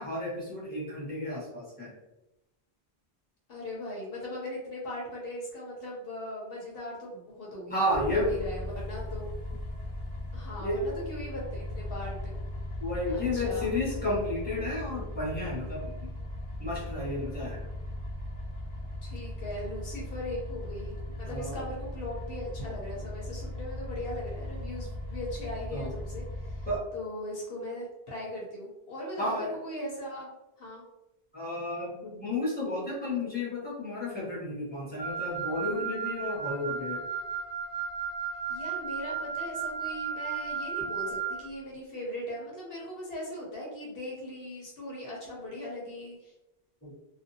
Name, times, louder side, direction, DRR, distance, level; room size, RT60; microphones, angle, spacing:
voice 1, 0.0-1.9 7.7-8.3 10.6-10.8 12.8-16.1 16.6-17.7 21.3-21.6 25.7-25.9 26.7-26.8 29.2-29.5 31.3-37.0 46.8-46.9, left 1 dB, 10° left, -8 dB, 1.0 m, -32 dB
voice 2, 3.5-9.3 10.3-12.4 13.1-13.7 19.0-26.7 26.9-30.3 30.6-30.8 38.5-46.3, left 1 dB, 70° left, -3 dB, 0.9 m, -39 dB
sound 1, 7.9-26.8, left 1 dB, 55° left, 0.6 m, -38 dB
Wind instrument woodwind instrument, 35.0-41.4, right 6 dB, 25° right, 0.5 m, -34 dB
2.6 x 2.3 x 2.6 m, 0.97 s
omnidirectional pair, 1.0 m